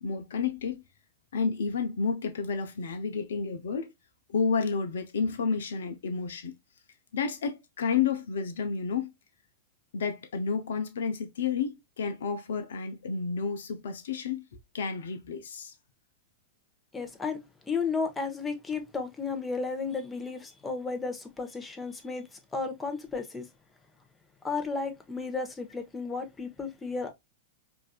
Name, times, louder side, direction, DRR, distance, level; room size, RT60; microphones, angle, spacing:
voice 1, 0.0-0.8 1.3-3.9 4.3-6.6 7.1-9.1 9.9-14.4 14.7-15.7, left 5 dB, 70° left, 0.6 m, -30 dB
voice 2, 16.9-17.4 17.7-23.5 24.4-27.1, left 4 dB, 15° left, 1.0 m, -33 dB
4.7 x 2.6 x 2.2 m
hypercardioid pair, 100°, 0 cm